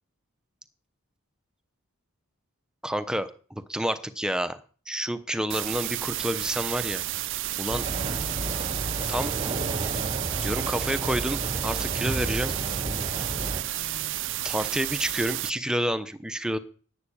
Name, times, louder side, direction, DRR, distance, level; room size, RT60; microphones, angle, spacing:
voice 1, 2.8-4.6 4.9-7.0 7.6-7.8 9.1-9.3 10.4-12.5 14.4-16.6, equal, 5° right, 11 dB, 0.8 m, -29 dB
sound 1, 5.5-15.5, right 15 dB, 55° right, 0.5 m, -31 dB
sound 2, 7.7-13.6, right 2 dB, 25° right, 1.1 m, -32 dB
Female speech woman speaking, 7.9-10.2 10.4-11.2 12.1-14.3, left 2 dB, 85° left, 1.3 m, -44 dB
12.0 x 7.7 x 8.6 m, 0.42 s
head